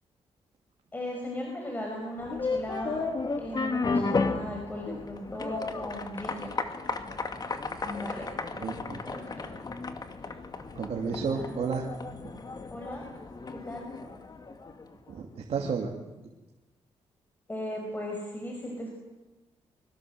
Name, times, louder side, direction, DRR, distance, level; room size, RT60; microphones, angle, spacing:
voice 1, 0.9-3.0 3.4-6.5 7.8-8.3 9.0-9.6 11.3-11.5 12.7-13.1 13.5-13.9 17.5-18.9, left 1 dB, 15° left, 1 dB, 5.3 m, -37 dB
sound 1, 2.2-14.9, left 3 dB, 35° left, 2.3 m, -34 dB
voice 2, 8.5-9.0 10.7-11.9 15.1-15.9, right 5 dB, 65° right, 1 dB, 2.8 m, -31 dB
24.5 x 23.5 x 7.9 m, 1.1 s
cardioid pair, 120°, 11 cm